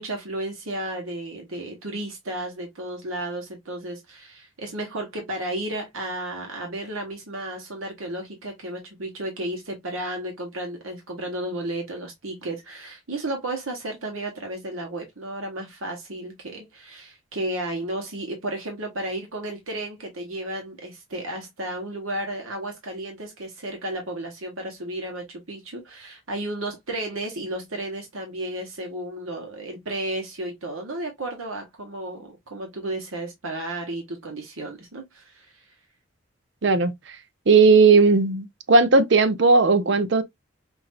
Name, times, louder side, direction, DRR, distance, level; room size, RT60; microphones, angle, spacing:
voice 1, 0.0-35.7, right 1 dB, 85° right, 1.3 m, -33 dB
voice 2, 36.6-37.2 37.5-40.2, right 4 dB, 60° right, 0.6 m, -17 dB
5.9 x 2.7 x 2.5 m
head